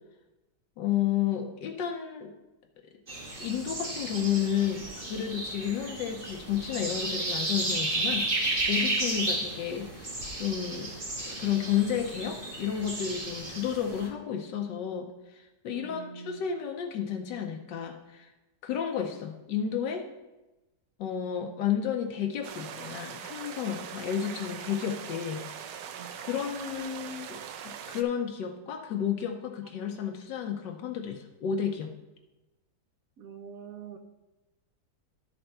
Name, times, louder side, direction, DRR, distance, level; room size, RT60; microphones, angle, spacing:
voice 1, 0.8-2.3 3.4-10.9 11.3-18.3 18.6-20.1 21.0-25.4 26.2-27.4 27.6-31.9, left 9 dB, 85° left, 4 dB, 1.5 m, -32 dB
sound 1, 3.1-14.1, right 2 dB, 30° right, 1.7 m, -33 dB
voice 2, 15.7-16.4 25.9-26.1 33.2-34.0, right 7 dB, 60° right, 6 dB, 1.1 m, -44 dB
sound 2, 22.4-28.0, right 8 dB, 80° right, 1.3 m, -41 dB
12.0 x 4.4 x 5.4 m, 1.0 s
omnidirectional pair, 1.9 m